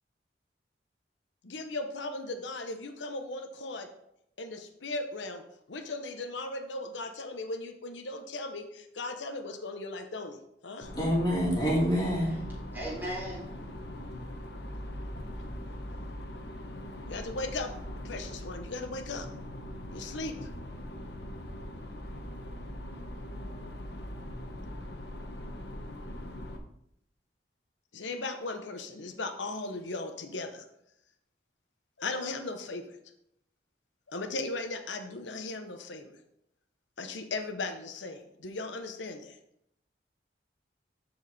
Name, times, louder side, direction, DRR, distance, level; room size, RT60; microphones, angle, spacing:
voice 1, 1.4-3.9 4.4-5.4 5.7-10.9 17.0-19.3 19.9-20.4 27.9-30.6 32.0-33.0 34.1-36.1 37.0-39.4, left 2 dB, 90° left, 6 dB, 0.9 m, -37 dB
sound 1, 10.8-26.6, left 1 dB, 65° left, 1.2 m, -41 dB
voice 2, 10.9-12.4, equal, 20° left, -5 dB, 3.0 m, -26 dB
voice 3, 11.9-12.5 12.7-13.4, right 1 dB, 10° right, -7 dB, 4.1 m, -38 dB
13.5 x 4.8 x 4.2 m, 0.77 s
head